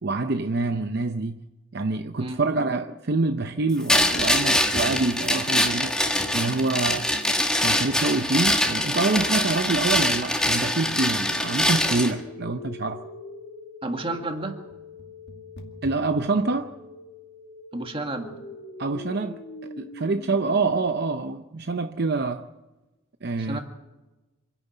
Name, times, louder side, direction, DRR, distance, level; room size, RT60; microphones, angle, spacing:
voice 1, 0.0-1.4 1.7-6.0 6.3-7.1 7.6-13.0 15.8-16.7 18.8-22.5 23.2-23.6, right 3 dB, 55° right, 0.7 m, -26 dB
sound 1, 3.9-12.1, left 1 dB, 5° left, 1.6 m, -23 dB
sound 2, 10.9-20.9, left 2 dB, 60° left, 2.3 m, -42 dB
voice 2, 13.8-14.6 17.7-18.4 23.4-23.6, right 2 dB, 25° right, 2.0 m, -31 dB
26.5 x 11.0 x 9.1 m
head